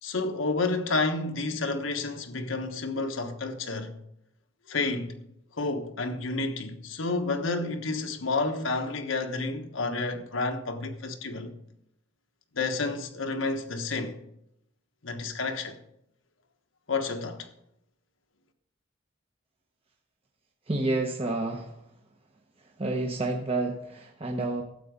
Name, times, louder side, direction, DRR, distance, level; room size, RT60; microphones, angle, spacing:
voice 1, 0.0-3.9 4.7-5.1 5.6-11.5 12.5-14.2 15.0-15.7 16.9-17.5, left 3 dB, 85° left, 1.3 m, -30 dB
voice 2, 20.7-21.8 22.8-24.6, right 2 dB, 30° right, 1.0 m, -29 dB
12.5 x 8.4 x 5.2 m
head